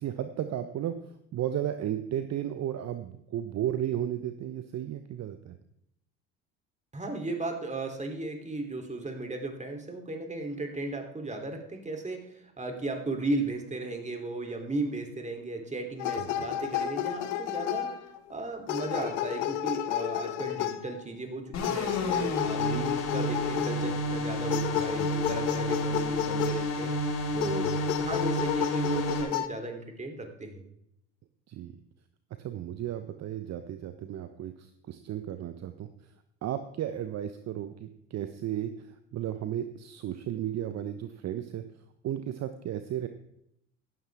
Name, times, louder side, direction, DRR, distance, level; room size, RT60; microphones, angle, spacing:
voice 1, 0.0-5.6 16.2-16.5 25.0-25.4 27.6-27.8 31.5-31.7 32.4-36.1 36.4-41.6 42.0-43.1, right 11 dB, 45° right, 10 dB, 1.0 m, -34 dB
voice 2, 6.9-18.0 18.3-27.0 27.3-27.7 28.0-30.6, right 2 dB, 20° right, 4 dB, 3.3 m, -35 dB
sound 1, 16.0-18.3 18.7-21.0 21.6-23.9 24.5-26.9 27.4-29.5, left 12 dB, 70° left, 1.0 m, -32 dB
sound 2, 21.5-29.2, equal, 50° left, 5.9 m, -30 dB
16.5 x 12.0 x 3.6 m, 0.76 s
hypercardioid pair, 60°, 37 cm